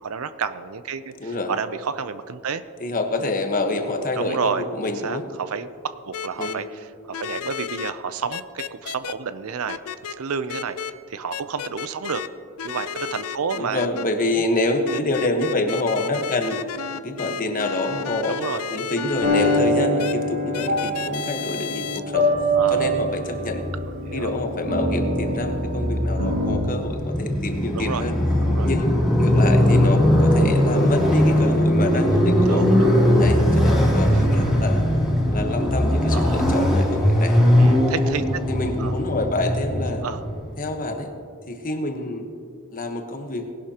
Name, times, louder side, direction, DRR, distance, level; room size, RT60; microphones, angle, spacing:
voice 1, 0.0-2.6 4.1-9.8 10.1-10.8 11.1-12.2 12.6-13.9 14.3-14.4 18.3-18.7 22.5-22.9 24.1-24.3 27.7-28.0 28.5-28.7 32.5-33.4 36.1-36.4 37.5-38.4 38.8-38.9 40.0-40.2, right 6 dB, 70° right, 12 dB, 0.5 m, -30 dB
voice 2, 1.2-1.5 2.8-5.2 6.4-6.7 13.5-16.6 17.0-18.4 18.7-22.3 22.7-23.6 24.1-28.2 28.6-28.9 29.2-32.6 33.2-34.9 35.3-37.4 38.5-40.0 40.6-41.1 41.5-42.3 42.7-43.5, left 2 dB, 40° left, 4 dB, 1.2 m, -27 dB
sound 1, 6.1-6.5 7.1-7.9 8.3-9.1 9.7-10.1 10.5-10.9 11.3-12.3 12.6-14.0 14.9-19.6 20.0-20.1 20.5-22.0, left 8 dB, 75° left, 0.5 m, -32 dB
sound 2, 19.2-26.6, equal, 90° right, 2.4 m, -24 dB
Motorcycle, 22.4-40.6, left 1 dB, ahead, 2.8 m, -20 dB
19.0 x 11.5 x 2.9 m, 2.3 s
head